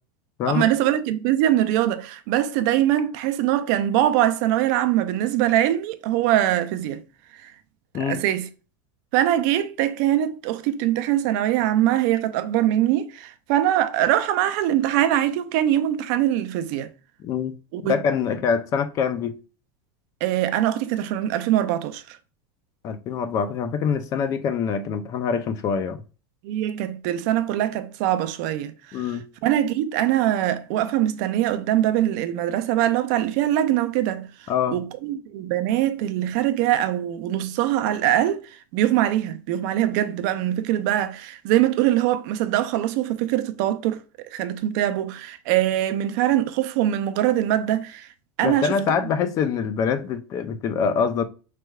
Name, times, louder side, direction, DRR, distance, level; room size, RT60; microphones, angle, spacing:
voice 1, 0.5-7.0 7.3-7.5 7.9-8.5 9.1-16.9 17.7-17.9 20.2-22.2 26.4-29.1 29.4-34.3 34.7-48.1 48.4-48.7, right 12 dB, 50° right, 0.4 m, -23 dB
voice 2, 17.2-17.5 17.9-19.3 22.8-26.0 28.9-29.2 34.5-34.8 48.4-51.2, left 6 dB, 30° left, 0.4 m, -24 dB
4.4 x 3.3 x 2.2 m
supercardioid pair, 160°, 12 cm